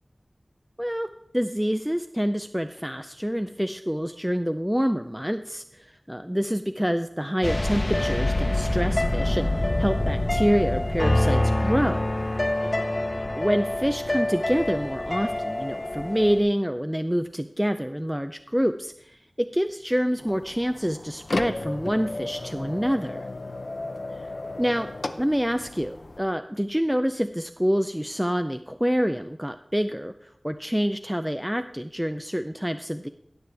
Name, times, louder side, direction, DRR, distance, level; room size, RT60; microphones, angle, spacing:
voice 1, 1.3-12.1 13.4-23.3 24.6-24.9 25.2-33.1, equal, 5° right, 8 dB, 0.4 m, -27 dB
sound 1, 7.4-16.4, left 1 dB, 40° left, 1.0 m, -25 dB
sound 2, 20.2-26.2, left 2 dB, 70° left, 0.6 m, -34 dB
17.5 x 6.7 x 3.4 m, 0.74 s
wide cardioid pair, 50°, 0 cm